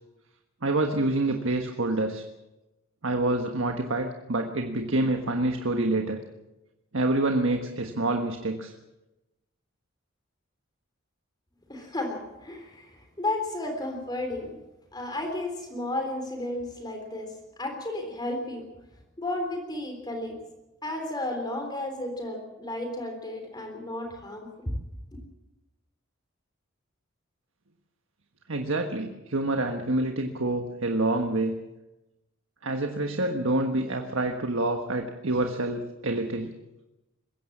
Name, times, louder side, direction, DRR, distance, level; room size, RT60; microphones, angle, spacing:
voice 1, 0.6-2.2 3.0-6.2 6.9-8.7 28.5-31.5 32.6-36.5, right 2 dB, 70° right, 4 dB, 1.5 m, -27 dB
voice 2, 11.7-14.6 14.9-17.3 17.6-18.7 19.2-20.4 20.8-24.7 25.1-25.2, left 1 dB, 20° left, 3 dB, 3.7 m, -33 dB
21.5 x 16.5 x 7.4 m, 1.0 s
head